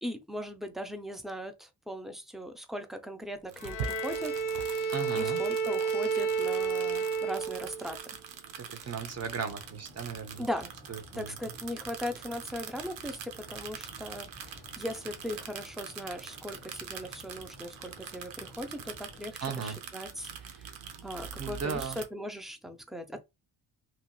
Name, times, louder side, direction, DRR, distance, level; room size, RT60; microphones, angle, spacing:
voice 1, 0.0-8.0 8.7-8.9 10.4-10.7 11.1-20.7 21.0-23.2, equal, ahead, 0.4 m, -39 dB
sound 1, 3.5-22.1, right 7 dB, 85° right, 0.7 m, -44 dB
Bowed string instrument, 3.6-8.0, right 5 dB, 45° left, 0.6 m, -31 dB
voice 2, 4.9-5.4 8.6-10.4 10.9-11.3 19.4-19.8 21.4-22.0, right 6 dB, 35° right, 0.8 m, -36 dB
sound 2, 8.8-19.2, left 2 dB, 15° left, 1.3 m, -54 dB
2.9 x 2.8 x 2.3 m
cardioid pair, 90°, 44 cm